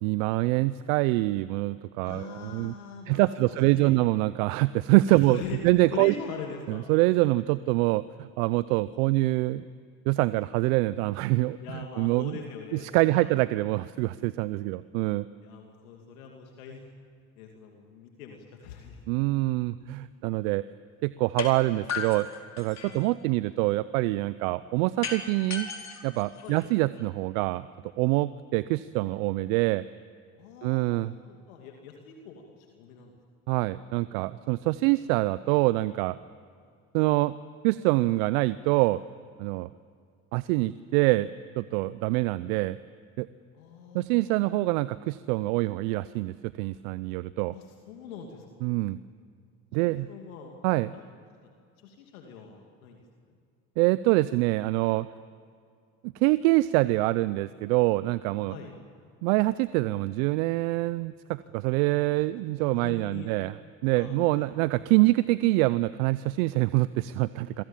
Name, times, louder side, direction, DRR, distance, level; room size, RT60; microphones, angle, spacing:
voice 1, 0.0-2.7 3.1-6.1 6.7-9.7 10.1-11.6 12.0-12.4 12.7-15.3 19.1-20.6 21.0-22.3 22.6-25.7 26.0-27.7 28.0-29.8 30.6-31.1 33.5-36.2 36.9-37.4 37.6-39.0 39.4-39.7 40.3-42.8 43.2-43.3 43.9-47.5 48.6-49.0 49.7-50.1 50.6-50.9 53.8-55.1 56.0-58.6 59.2-63.5 63.8-67.6, right 19 dB, 75° right, 17 dB, 0.7 m, -25 dB
voice 2, 2.0-4.0 5.1-5.6 5.9-6.9 11.6-13.3 15.4-16.9 17.4-19.2 22.8-23.1 26.4-26.6 30.4-33.1 43.5-44.4 47.5-48.7 49.8-50.6 50.9-51.0 51.4-51.5 51.8-53.0 58.5-58.7 62.7-63.3 63.9-64.9, left 6 dB, 80° left, 2 dB, 2.8 m, -43 dB
sound 1, 21.4-21.5 21.9-23.1 25.0-27.0, left 5 dB, 40° left, 4.5 m, -35 dB
29.0 x 23.0 x 7.4 m, 2.2 s
hypercardioid pair, 65°, 42 cm